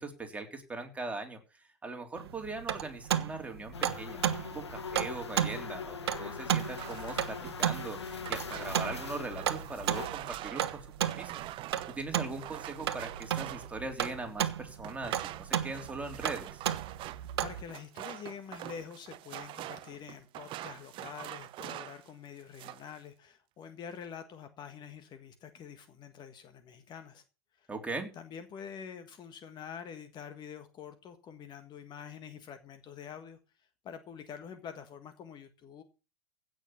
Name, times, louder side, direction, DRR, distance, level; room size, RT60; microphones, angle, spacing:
voice 1, 0.0-4.3 4.5-11.3 11.9-16.6 27.7-28.1, right 3 dB, 10° right, 3.4 m, -40 dB
sound 1, 2.2-17.6, right 10 dB, 70° right, 1.2 m, -34 dB
sound 2, 3.7-10.1, left 5 dB, 80° left, 1.6 m, -41 dB
sound 3, 6.6-14.3 14.8-22.1 22.4-22.9, right 15 dB, 40° right, 0.9 m, -44 dB
voice 2, 17.4-27.2 27.6-27.7 28.1-35.8, left 7 dB, 30° left, 1.6 m, -46 dB
16.0 x 6.4 x 7.1 m
figure-of-eight pair, 95°, 14 cm